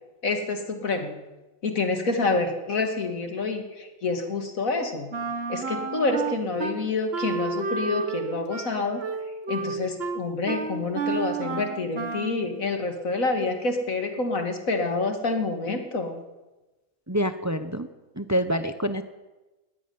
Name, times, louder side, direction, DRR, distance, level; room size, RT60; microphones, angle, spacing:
voice 1, 0.2-1.2 1.6-5.1 5.5-9.0 9.5-16.2, left 3 dB, 70° left, 5 dB, 2.8 m, -27 dB
Wind instrument woodwind instrument, 5.1-6.8 7.1-12.5, right 4 dB, 45° right, 1.6 m, -31 dB
voice 2, 17.1-17.9 18.2-19.0, equal, 15° right, 10 dB, 0.8 m, -26 dB
19.5 x 14.5 x 9.6 m, 1.1 s
omnidirectional pair, 1.5 m